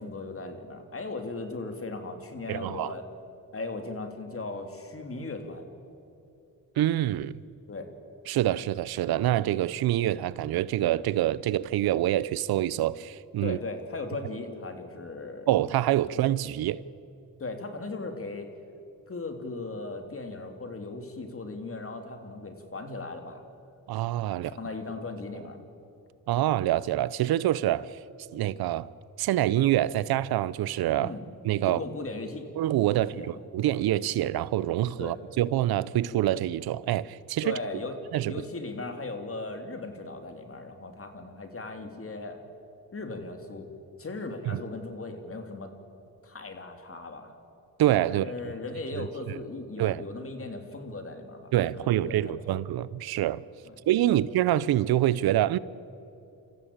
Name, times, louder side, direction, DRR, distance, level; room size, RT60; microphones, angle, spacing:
voice 1, 0.0-3.0 3.5-5.6 7.7-7.9 13.4-15.5 17.4-18.6 19.1-23.4 24.5-25.6 31.0-31.2 31.7-32.4 33.0-33.4 35.0-35.2 37.4-38.0 38.3-42.4 42.9-43.7 44.0-45.7 46.2-47.3 48.1-52.6 53.6-53.7 54.1-54.2, left 3 dB, 40° left, 3.1 m, -37 dB
voice 2, 2.5-2.9 6.8-7.4 8.3-13.6 15.5-16.8 23.9-24.5 26.3-28.0 28.3-28.9 29.2-31.1 31.4-31.8 32.6-37.6 38.1-38.3 44.5-44.6 47.8-48.3 49.0-49.4 49.8-50.0 51.5-53.4 53.9-55.6, right 13 dB, 85° right, 0.7 m, -26 dB
28.5 x 14.5 x 8.8 m
cardioid pair, 75°, 36 cm